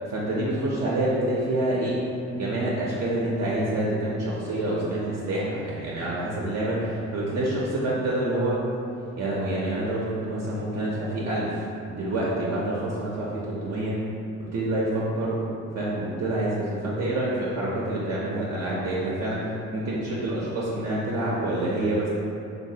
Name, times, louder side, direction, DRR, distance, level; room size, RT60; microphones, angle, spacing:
voice 1, 0.1-2.0 2.3-8.6 9.2-14.0 14.5-22.1, right 1 dB, 55° right, -6 dB, 0.5 m, -27 dB
3.1 x 2.3 x 2.7 m, 2.6 s
cardioid pair, 90°, 30 cm